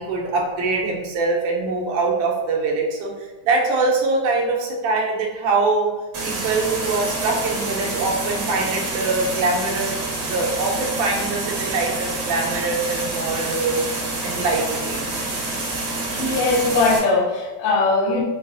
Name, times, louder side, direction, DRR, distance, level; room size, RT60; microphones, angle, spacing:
voice 1, 0.0-3.1 3.4-5.9 6.2-9.9 10.2-13.8 14.2-15.1, right 3 dB, 90° right, -2 dB, 2.2 m, -23 dB
sound 1, 6.1-17.0, right 2 dB, 75° right, 2.2 m, -27 dB
voice 2, 16.1-18.2, left 3 dB, 80° left, -1 dB, 1.6 m, -20 dB
5.4 x 2.4 x 2.3 m, 1.2 s
omnidirectional pair, 3.6 m